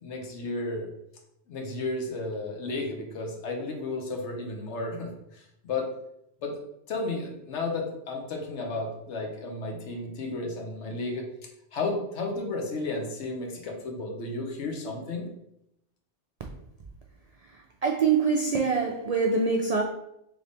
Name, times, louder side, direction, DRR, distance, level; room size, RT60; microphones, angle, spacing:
voice 1, 0.0-0.9 1.5-5.9 6.4-6.6 6.9-11.3 11.7-15.3, left 2 dB, 75° left, 2 dB, 1.2 m, -33 dB
voice 2, 17.8-19.8, right 5 dB, 70° right, 2 dB, 0.3 m, -24 dB
3.9 x 3.3 x 3.4 m, 0.80 s
omnidirectional pair, 1.2 m